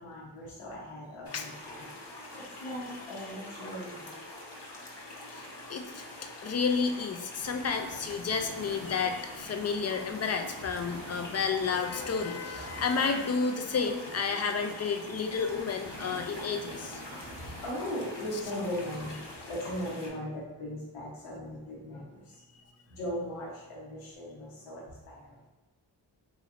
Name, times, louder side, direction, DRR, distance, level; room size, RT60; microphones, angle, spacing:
voice 1, 0.0-1.9 2.3-4.2 12.7-12.8 17.2-19.2 19.4-22.3 22.9-25.4, equal, 85° left, -5 dB, 0.9 m, -38 dB
sound 1, 1.2-20.1, left 1 dB, 60° left, 1.0 m, -45 dB
voice 2, 5.3-6.0 6.4-17.0, left 5 dB, 35° left, 5 dB, 0.4 m, -31 dB
sound 2, 7.4-19.4, right 1 dB, 75° right, 0.9 m, -47 dB
3.0 x 2.9 x 2.5 m, 1.1 s
cardioid pair, 45°, 47 cm